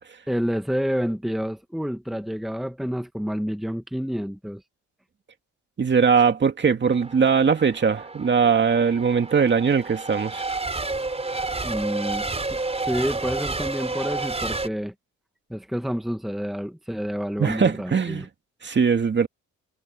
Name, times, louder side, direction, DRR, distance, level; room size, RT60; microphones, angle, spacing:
voice 1, 0.3-4.6 11.6-12.3 12.5-14.9 15.5-18.3, equal, ahead, 1.4 m, -28 dB
voice 2, 5.8-10.4 17.4-18.3 18.6-19.3, right 6 dB, 35° right, 2.4 m, -20 dB
Race car auto racing / Accelerating revving vroom / Mechanisms, 6.8-14.7, right 3 dB, 20° right, 4.8 m, -30 dB
cardioid pair, 90°, 30 cm